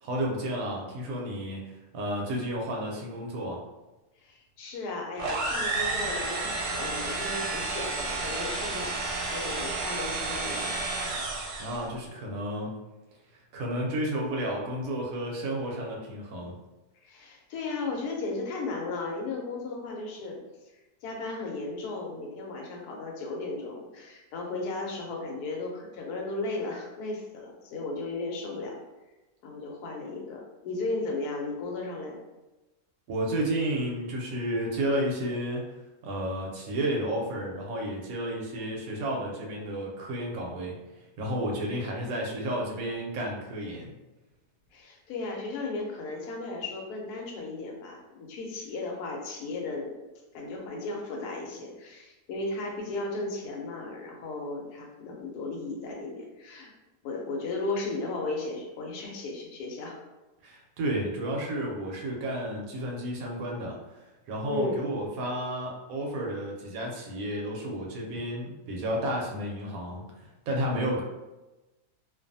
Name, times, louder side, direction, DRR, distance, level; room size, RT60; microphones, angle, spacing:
voice 1, 0.0-3.6 11.6-12.8 13.5-16.6 33.1-35.7 36.0-43.9 60.4-71.0, right 1 dB, 70° right, -1 dB, 0.9 m, -32 dB
voice 2, 4.2-10.8 17.0-20.4 21.0-28.8 29.4-32.2 44.7-49.9 50.3-56.7 57.0-60.0 64.5-64.9, left 3 dB, 70° left, 0 dB, 1.1 m, -35 dB
sound 1, 5.2-11.9, right 3 dB, 90° right, 1.2 m, -31 dB
2.5 x 2.3 x 2.6 m, 1.1 s
omnidirectional pair, 1.8 m